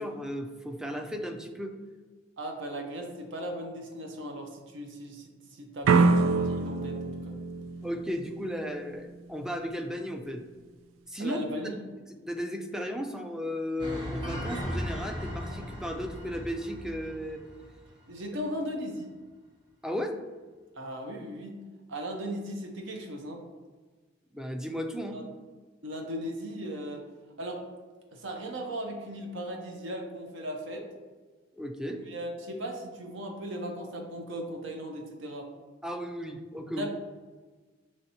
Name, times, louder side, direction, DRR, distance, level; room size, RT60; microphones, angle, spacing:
voice 1, 0.0-1.8 7.8-10.4 11.1-11.4 12.2-17.4 19.8-20.2 24.3-25.2 31.5-32.0 35.8-36.9, equal, 5° right, 5 dB, 0.3 m, -35 dB
voice 2, 2.4-7.4 11.2-11.8 18.1-19.1 20.7-21.6 21.9-23.4 25.1-25.2 25.8-27.0 27.4-27.6 28.1-30.8 31.9-35.5 36.8-36.9, equal, 65° right, 2 dB, 0.7 m, -37 dB
sound 1, 5.8-8.7, right 4 dB, 85° right, 0.3 m, -25 dB
sound 2, 13.8-17.7 18.0-18.1, equal, 25° right, 0.7 m, -37 dB
5.8 x 3.2 x 2.7 m, 1.4 s
head